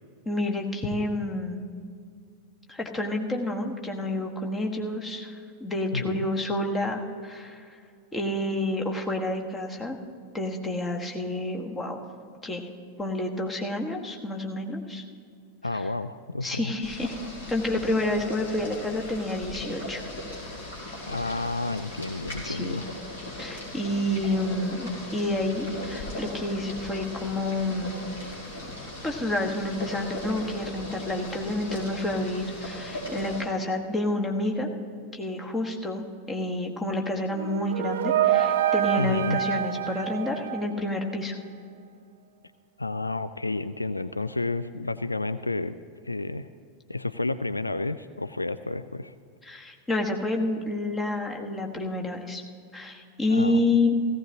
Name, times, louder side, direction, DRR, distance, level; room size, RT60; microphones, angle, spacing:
voice 1, 0.2-1.6 2.7-5.3 5.6-7.7 8.1-10.0 10.3-12.0 12.4-12.7 13.0-15.0 16.4-17.2 17.5-20.0 22.4-22.8 23.4-27.9 29.0-34.7 35.1-41.4 49.5-52.4 52.7-54.0, left 1 dB, 15° left, 2 dB, 1.4 m, -29 dB
voice 2, 15.6-16.7 21.1-22.9 39.0-39.4 42.8-45.8 46.0-46.5 46.9-49.1 53.3-53.6, left 2 dB, 80° left, 12 dB, 0.3 m, -30 dB
Boiling, 16.8-33.4, left 1 dB, 60° left, 4.0 m, -38 dB
sound 1, 37.3-41.2, right 11 dB, 60° right, 0.4 m, -26 dB
17.0 x 15.5 x 2.9 m, 2.3 s
figure-of-eight pair, 90°, 0 cm